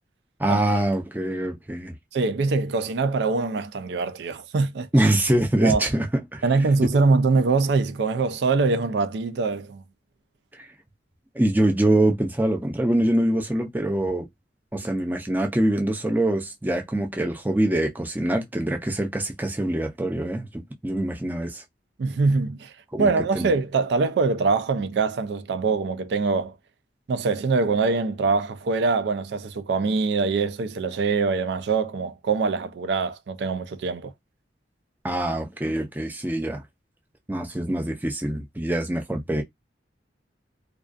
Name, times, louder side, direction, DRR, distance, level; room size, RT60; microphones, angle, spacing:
voice 1, 0.4-2.0 4.9-6.4 11.3-14.3 14.7-21.6 22.9-23.5 35.0-36.6 37.3-39.4, right 1 dB, 10° right, 0.5 m, -24 dB
voice 2, 2.1-4.9 5.6-5.9 6.4-9.8 22.0-22.7 23.0-26.6 27.1-34.1, right 4 dB, 70° right, 0.4 m, -23 dB
2.3 x 2.3 x 2.4 m
head